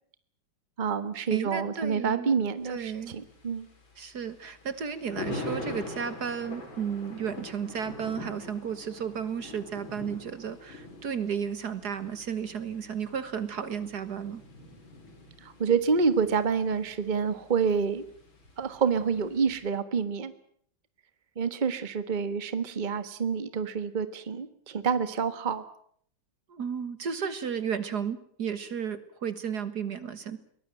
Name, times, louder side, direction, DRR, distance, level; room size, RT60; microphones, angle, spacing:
voice 1, 0.8-3.7 15.4-18.0 18.6-20.3 21.4-25.6, right 5 dB, 25° right, 12 dB, 1.4 m, -28 dB
voice 2, 1.3-2.4 2.6-3.2 4.0-14.4 26.5-30.4, right 7 dB, 55° right, 13 dB, 1.9 m, -33 dB
Thunder, 2.6-19.7, left 2 dB, 85° left, 4.9 m, -44 dB
23.0 x 19.0 x 9.1 m, 0.63 s
omnidirectional pair, 2.1 m